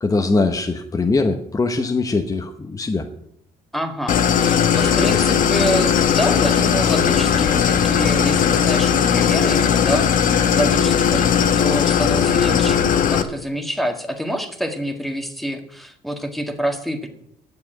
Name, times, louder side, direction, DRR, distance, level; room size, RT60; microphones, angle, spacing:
voice 1, 0.0-3.1, left 3 dB, 20° left, 5 dB, 1.0 m, -21 dB
voice 2, 3.7-17.1, equal, ahead, 4 dB, 1.7 m, -27 dB
Idling, 4.1-13.2, left 8 dB, 55° left, 1.1 m, -18 dB
9.7 x 7.0 x 8.9 m, 0.73 s
cardioid pair, 110°, 17 cm